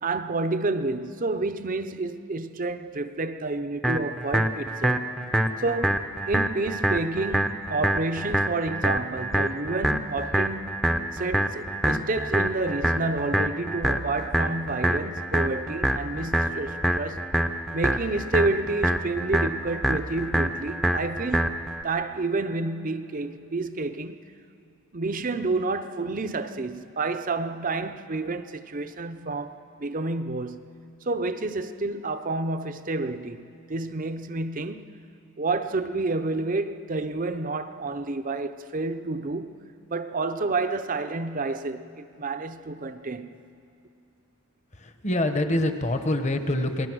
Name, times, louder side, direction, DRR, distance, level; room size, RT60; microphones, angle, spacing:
voice 1, 0.0-5.2 5.6-10.9 11.1-17.3 17.7-24.2 24.9-35.0 35.4-43.5, right 3 dB, 40° right, 0.7 m, -29 dB
sound 1, 3.8-21.8, right 1 dB, ahead, 0.7 m, -26 dB
voice 2, 44.7-46.9, left 1 dB, 30° left, 1.1 m, -25 dB
28.0 x 19.5 x 6.2 m
head